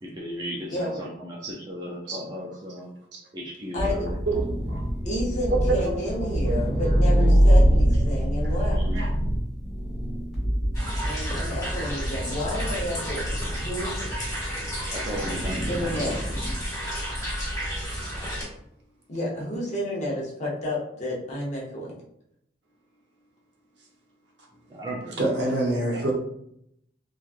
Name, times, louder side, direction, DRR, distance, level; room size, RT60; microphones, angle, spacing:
voice 1, 0.0-2.9 3.3-4.5 8.7-9.0 14.9-15.9 24.7-25.2, equal, 25° right, -3 dB, 0.4 m, -36 dB
voice 2, 0.7-1.1 3.7-4.1 5.0-8.8 11.1-14.1 15.7-16.3 19.1-22.0, left 1 dB, 40° left, -4 dB, 0.9 m, -31 dB
sound 1, 3.8-16.5, equal, 5° right, 1.4 m, -24 dB
voice 3, 5.5-5.9 6.5-6.8 8.4-8.6 8.9-9.1 14.1-15.2 25.2-26.1, right 2 dB, 70° right, -2 dB, 0.8 m, -28 dB
sound 2, 10.7-18.4, equal, 20° left, 1.3 m, -32 dB
3.1 x 2.3 x 2.4 m, 0.74 s
head